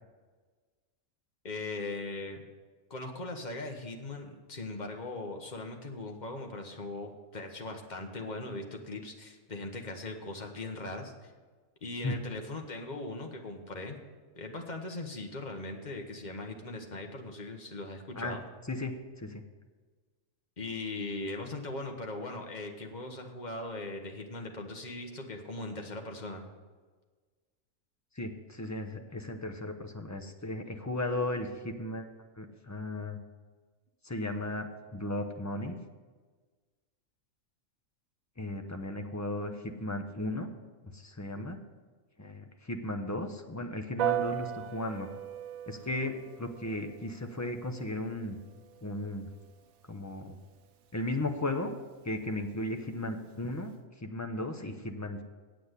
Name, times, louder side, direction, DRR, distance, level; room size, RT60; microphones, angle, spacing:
voice 1, 1.4-2.4 2.9-11.3 11.8-14.0 14.4-18.4 20.6-26.4, left 2 dB, 35° left, 3 dB, 1.3 m, -39 dB
voice 2, 18.7-19.4 28.2-32.0 32.4-33.2 34.0-35.8 38.4-40.5 40.9-41.6 42.2-45.1 45.7-48.4 48.8-49.3 49.9-50.4 50.9-51.7 52.0-53.7 54.0-55.2, left 1 dB, 20° left, 5 dB, 0.5 m, -35 dB
Piano, 44.0-53.7, right 12 dB, 80° right, 1.1 m, -40 dB
8.5 x 7.7 x 8.2 m, 1.4 s
omnidirectional pair, 1.4 m